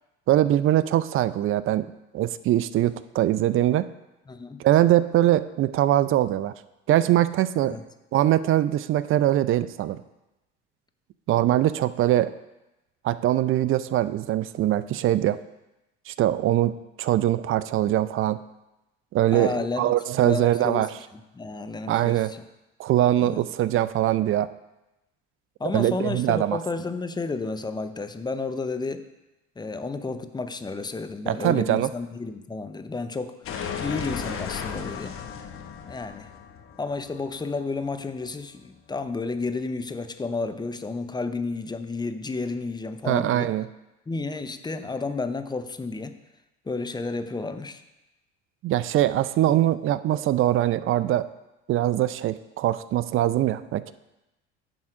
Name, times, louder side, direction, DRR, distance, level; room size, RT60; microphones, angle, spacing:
voice 1, 0.3-1.8 2.1-3.8 4.6-6.5 6.9-7.8 8.1-10.0 11.3-12.3 13.0-15.4 16.1-16.7 17.0-18.4 19.1-20.9 21.9-22.3 22.8-24.5 25.7-26.6 31.3-31.9 43.1-43.7 48.6-51.3 51.7-53.9, right 13 dB, 45° right, 15 dB, 0.4 m, -22 dB
voice 2, 4.3-4.6 7.6-7.8 19.3-19.9 20.2-20.9 21.1-22.4 23.2-23.4 25.6-29.0 29.6-33.4 33.8-35.2 35.9-36.3 36.8-43.5 44.1-46.2 46.7-47.8 49.5-49.6, left 3 dB, 15° left, 9 dB, 0.5 m, -31 dB
sound 1, 33.4-38.2, left 7 dB, 50° left, 1.0 m, -35 dB
10.5 x 3.7 x 4.8 m, 0.97 s
supercardioid pair, 80°, 29 cm